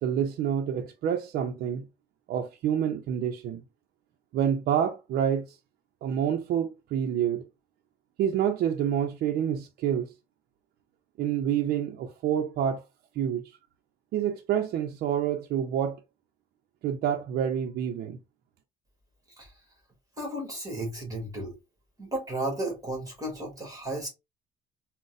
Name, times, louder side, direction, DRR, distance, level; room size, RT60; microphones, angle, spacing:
voice 1, 0.0-1.8 2.3-3.6 4.3-5.5 6.0-7.4 8.2-10.1 11.2-12.8 13.2-13.4 14.1-16.0 16.8-18.2, right 9 dB, 65° right, 0.5 m, -27 dB
voice 2, 20.2-21.5 22.0-24.1, right 1 dB, 20° right, 1.4 m, -33 dB
3.9 x 2.1 x 2.5 m
cardioid pair, 110°, 17 cm